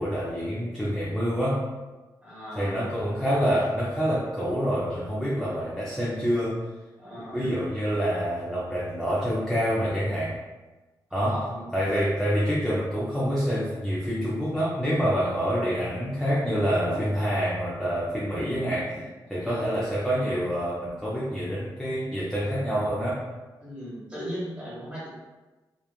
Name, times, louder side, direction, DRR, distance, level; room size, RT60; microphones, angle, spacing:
voice 1, 0.0-1.7 2.6-6.6 7.3-10.4 11.1-11.4 11.7-23.2, equal, ahead, -7 dB, 0.5 m, -27 dB
voice 2, 2.2-2.9 7.0-7.4 11.1-11.7 19.4-19.8 23.6-25.1, equal, 15° right, -8 dB, 1.5 m, -37 dB
3.0 x 2.3 x 2.3 m, 1.2 s
cardioid pair, 95°, 8 cm